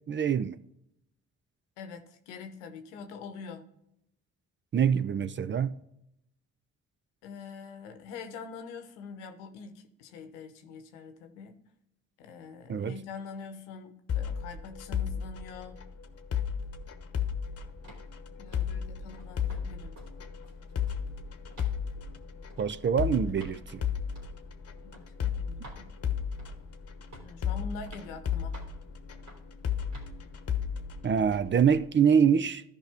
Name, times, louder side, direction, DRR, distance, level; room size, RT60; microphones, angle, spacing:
voice 1, 0.1-0.6 4.7-5.8 12.7-13.0 22.6-23.8 31.0-32.6, right 7 dB, 35° right, 0.5 m, -25 dB
voice 2, 1.8-3.7 7.2-11.6 12.2-15.8 18.4-20.0 24.8-25.9 27.2-28.6, left 5 dB, 85° left, 0.9 m, -44 dB
sound 1, 14.1-31.8, left 8 dB, 45° left, 1.0 m, -34 dB
sound 2, 17.8-18.1 18.5-18.8 19.2-19.6 20.0-20.1 20.4-21.1 21.5-21.8 22.5-22.7 23.4-23.6 24.2-24.3 24.9-25.1 25.6-25.9 26.4-26.7 27.1-27.4 27.9-28.1 28.5-28.8 29.3-29.5 29.9-30.1, right 1 dB, 60° right, 3.3 m, -51 dB
14.0 x 5.2 x 3.5 m
hypercardioid pair, 45°, 35 cm